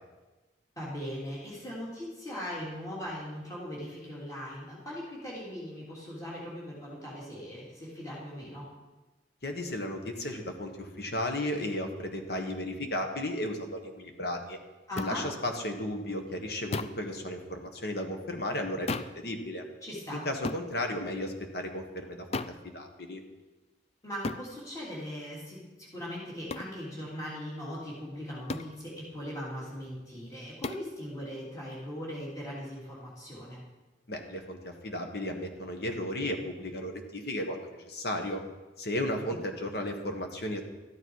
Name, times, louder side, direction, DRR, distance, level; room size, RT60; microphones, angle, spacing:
voice 1, 0.8-8.7 14.9-15.3 19.8-20.3 24.0-33.6 39.3-39.4, equal, 20° left, -6 dB, 3.1 m, -39 dB
voice 2, 9.4-14.6 15.0-18.9 19.1-19.6 20.1-23.2 34.1-38.4 38.8-40.6, left 1 dB, 60° left, 4 dB, 1.4 m, -34 dB
sound 1, 15.0-15.1 16.7-17.1 18.9-19.2 20.4-20.7 22.3-22.6 24.2-24.5 26.5-26.7 28.5-28.8 30.6-30.9, left 3 dB, 35° left, 0.4 m, -34 dB
13.0 x 9.9 x 4.8 m, 1.2 s
head